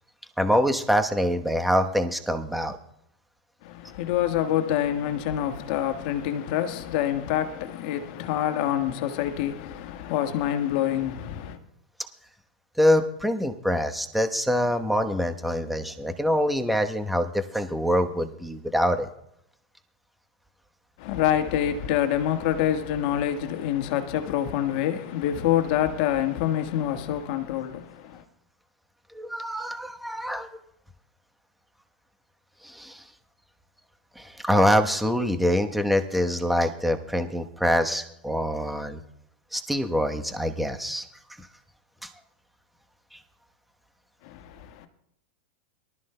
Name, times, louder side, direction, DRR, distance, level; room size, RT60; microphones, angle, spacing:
voice 1, 0.4-2.8 12.8-19.1 29.1-30.5 32.6-33.0 34.2-39.0 39.5-41.0 42.0-42.1 43.1-43.2, equal, ahead, 1.1 m, -25 dB
voice 2, 3.6-11.6 21.0-28.2 44.2-44.9, left 11 dB, 60° left, 1.5 m, -26 dB
23.0 x 13.0 x 2.2 m
hypercardioid pair, 100°, 5 cm